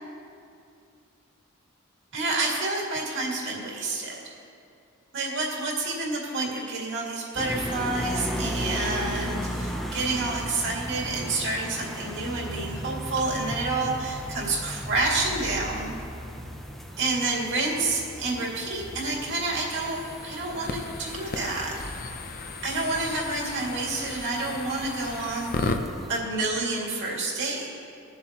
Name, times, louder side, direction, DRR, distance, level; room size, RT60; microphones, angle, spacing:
voice 1, 2.1-4.3 5.1-15.9 17.0-21.8 22.6-25.7 26.1-27.7, right 2 dB, 60° right, -3 dB, 2.4 m, -29 dB
sound 1, 7.4-26.1, equal, ahead, 0.6 m, -36 dB
sound 2, 19.8-25.8, left 3 dB, 45° left, 0.6 m, -35 dB
21.0 x 7.3 x 3.0 m, 2.5 s
head